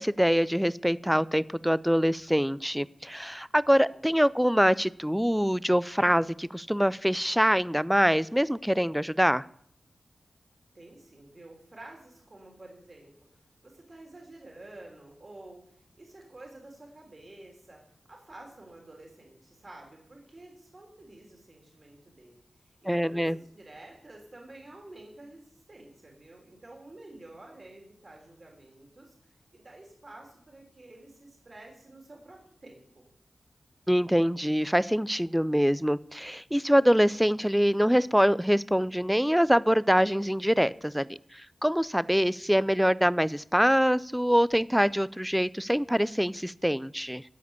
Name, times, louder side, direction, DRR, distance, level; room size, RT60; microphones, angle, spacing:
voice 1, 0.0-9.5 22.9-23.4 33.9-47.2, equal, 5° right, 19 dB, 0.4 m, -24 dB
voice 2, 10.7-13.3 13.6-33.0, right 2 dB, 45° right, 0 dB, 3.3 m, -50 dB
13.0 x 5.0 x 8.2 m, 0.67 s
cardioid pair, 50°, 0 cm